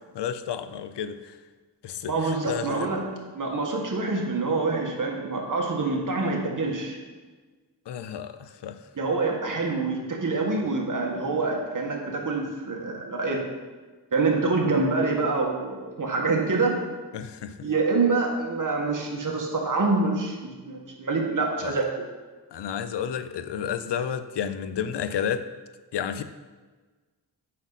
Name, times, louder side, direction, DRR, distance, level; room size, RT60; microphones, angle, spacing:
voice 1, 0.1-1.4 1.8-2.9 7.9-8.8 17.1-17.7 21.6-21.7 22.5-25.5 25.9-26.2, left 8 dB, 80° left, 11 dB, 0.6 m, -31 dB
voice 2, 2.0-3.0 3.3-7.0 9.0-13.4 14.1-16.7 17.6-21.8, right 3 dB, 50° right, 0 dB, 1.7 m, -26 dB
8.4 x 5.9 x 4.1 m, 1.4 s
cardioid pair, 70°, 41 cm